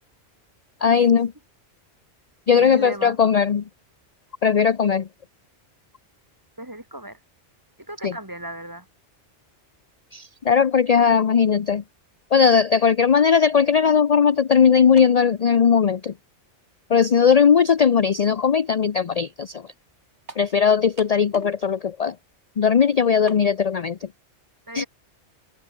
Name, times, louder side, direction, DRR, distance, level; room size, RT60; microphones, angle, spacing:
voice 1, 0.8-1.3 2.5-3.6 4.4-5.1 8.0-8.1 10.1-11.8 12.3-16.1 16.9-19.6 20.4-22.1 22.6-24.1 24.7-24.8, left 6 dB, 40° left, 0.6 m, -18 dB
voice 2, 2.5-3.2 6.6-7.2 7.9-8.9 24.7-24.9, right 1 dB, 15° right, 2.1 m, -35 dB
sound 1, 15.0-15.3 16.1-16.2 20.3-20.5 21.0-21.6 21.9-22.0 23.3-23.5, right 2 dB, 70° right, 4.6 m, -42 dB
open air
omnidirectional pair, 1.2 m